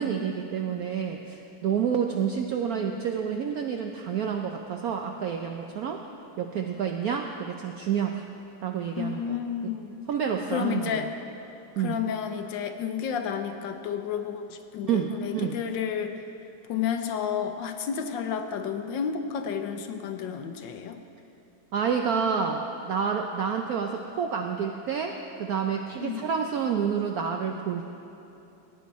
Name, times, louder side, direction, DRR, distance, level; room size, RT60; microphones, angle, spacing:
voice 1, 0.0-6.0 6.4-8.2 8.6-9.7 10.1-11.1 11.8-12.0 14.9-15.6 21.7-27.9, right 7 dB, 75° right, 3 dB, 0.8 m, -29 dB
voice 2, 9.0-10.0 10.5-11.1 11.8-16.2 16.7-21.0 26.0-26.2, left 7 dB, 70° left, 7 dB, 1.3 m, -31 dB
16.5 x 9.3 x 4.1 m, 3.0 s
omnidirectional pair, 2.2 m